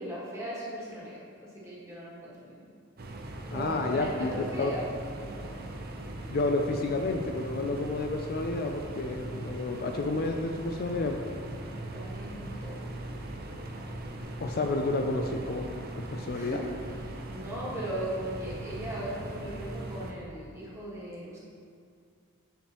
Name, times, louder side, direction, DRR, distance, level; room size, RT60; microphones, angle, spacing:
voice 1, 0.0-2.5 3.5-4.8 5.3-5.6 11.7-12.7 16.3-16.7 17.3-21.4, right 1 dB, 15° right, -6 dB, 1.5 m, -38 dB
sound 1, 3.0-20.1, right 1 dB, 45° right, 0.6 m, -40 dB
voice 2, 3.5-4.3 4.6-4.7 6.3-11.2 14.4-15.7 16.0-16.6, left 2 dB, 45° left, 3 dB, 0.4 m, -30 dB
7.2 x 7.0 x 3.0 m, 2.2 s
head